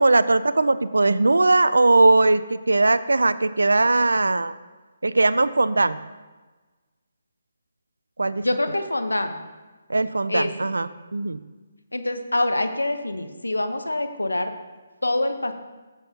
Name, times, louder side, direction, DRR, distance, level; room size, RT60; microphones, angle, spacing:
voice 1, 0.0-4.5 5.0-6.0 8.2-8.4 9.9-11.4, right 2 dB, 80° right, 15 dB, 0.4 m, -19 dB
voice 2, 8.4-9.4 10.3-10.7 11.9-14.5 15.0-15.5, left 1 dB, 90° left, 8 dB, 0.9 m, -25 dB
14.5 x 7.2 x 2.8 m, 1.3 s
figure-of-eight pair, 145°, 0 cm